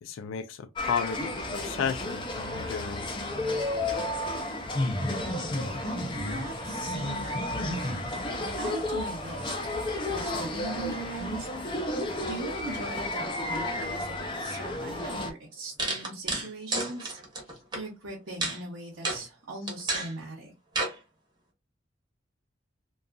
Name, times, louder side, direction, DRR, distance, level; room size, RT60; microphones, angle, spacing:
voice 1, 0.0-3.2, left 7 dB, 90° left, 0.3 m, -33 dB
sound 1, 0.8-15.3, left 1 dB, 25° left, 0.4 m, -32 dB
voice 2, 5.0-7.9 8.4-9.6 10.1-20.5, right 2 dB, 85° right, 0.8 m, -40 dB
sound 2, 15.0-15.1 15.8-17.8 18.4-18.6 19.0-19.2 19.7-20.1 20.8-20.9, right 2 dB, 20° right, 0.8 m, -30 dB
2.6 x 2.3 x 2.3 m
head